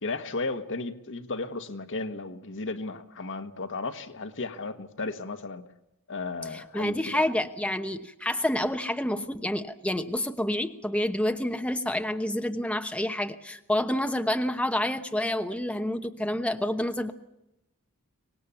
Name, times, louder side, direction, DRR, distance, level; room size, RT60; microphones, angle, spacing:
voice 1, 0.0-5.6 6.1-7.3, left 3 dB, 60° left, 1.5 m, -34 dB
voice 2, 6.5-17.1, left 1 dB, 5° left, 1.0 m, -28 dB
25.0 x 19.5 x 7.1 m
head